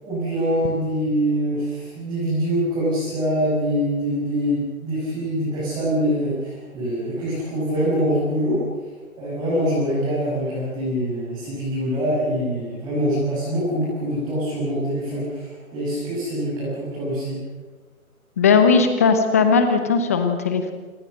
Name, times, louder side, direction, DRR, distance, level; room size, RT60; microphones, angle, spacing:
voice 1, 0.0-8.6 9.2-17.4, equal, 10° right, -9 dB, 6.6 m, -24 dB
voice 2, 18.4-20.7, left 5 dB, 10° left, 8 dB, 0.9 m, -18 dB
29.5 x 18.5 x 6.5 m, 1.4 s
figure-of-eight pair, 150°, 43 cm